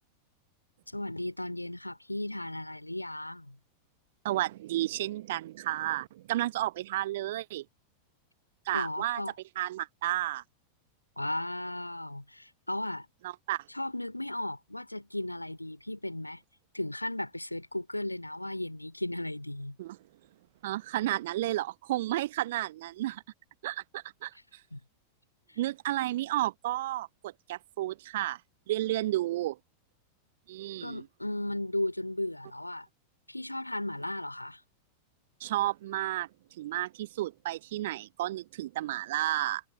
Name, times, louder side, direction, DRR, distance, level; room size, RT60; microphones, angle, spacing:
voice 1, 0.9-3.6 8.7-9.3 11.2-13.1 13.7-16.4 16.7-19.8 24.7-24.8 25.5-25.6 30.8-32.9 33.3-34.6, left 1 dB, 85° left, 3.1 m, -35 dB
voice 2, 4.2-7.6 8.7-9.2 9.6-10.4 13.2-13.6 19.8-20.0 20.6-23.2 23.6-24.3 25.6-28.4 28.7-29.6 30.5-31.0 35.4-36.3 36.6-39.6, right 15 dB, 55° right, 1.0 m, -32 dB
figure-of-eight pair, 90°, 0 cm